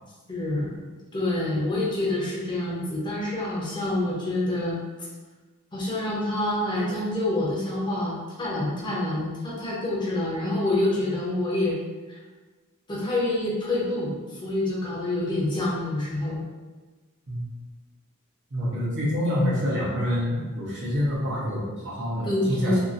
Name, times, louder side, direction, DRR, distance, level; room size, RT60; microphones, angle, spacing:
voice 1, 0.3-0.8 1.1-4.8 5.7-11.8 12.1-12.2 12.9-16.4 22.2-22.8, left 1 dB, 20° left, -6 dB, 0.7 m, -27 dB
voice 2, 18.5-22.8, equal, 55° right, -6 dB, 0.9 m, -27 dB
2.8 x 2.6 x 2.5 m, 1.3 s
head